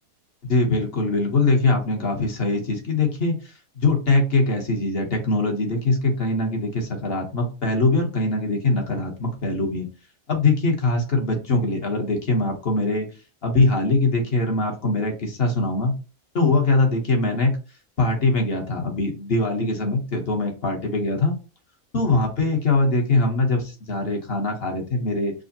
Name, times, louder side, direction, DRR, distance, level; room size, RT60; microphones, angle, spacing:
voice 1, 0.5-3.4 3.8-9.9 10.3-13.1 13.4-15.9 16.3-17.5 18.0-21.3 21.9-25.3, left 2 dB, 50° left, 2 dB, 1.0 m, -22 dB
4.9 x 2.1 x 2.6 m, 0.32 s
omnidirectional pair, 1.5 m